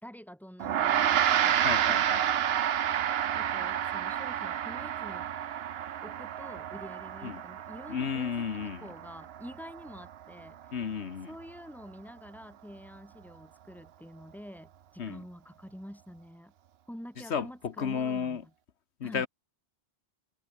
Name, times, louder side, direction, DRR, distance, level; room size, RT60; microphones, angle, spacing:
voice 1, 0.0-2.1 3.3-5.3 6.0-10.8 11.3-16.5 16.9-18.5 19.0-19.3, equal, ahead, 4.2 m, -47 dB
Gong, 0.6-10.2, right 10 dB, 70° right, 0.9 m, -30 dB
voice 2, 1.6-2.2 7.2-7.4 7.9-8.9 10.7-11.3 15.0-15.2 17.3-18.4 19.0-19.3, left 7 dB, 85° left, 1.5 m, -33 dB
omnidirectional pair, 1.1 m